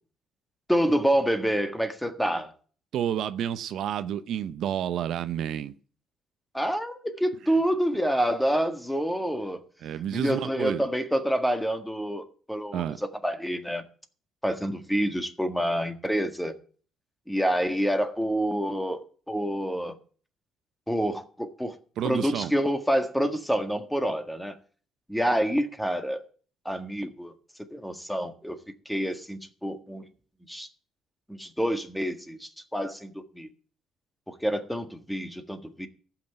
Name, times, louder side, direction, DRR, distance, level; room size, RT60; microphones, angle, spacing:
voice 1, 0.7-2.5 6.5-9.6 10.1-13.8 14.4-16.5 17.3-19.9 20.9-21.7 22.0-24.6 25.1-26.2 26.6-27.3 27.7-28.6 28.8-30.1 30.5-30.7 31.3-33.5 34.3-35.9, equal, 5° left, 1.6 m, -27 dB
voice 2, 2.9-5.7 9.8-10.9 12.7-13.0 22.0-22.5, right 10 dB, 70° right, 0.6 m, -30 dB
15.0 x 5.9 x 8.8 m
cardioid pair, 100°, 0 cm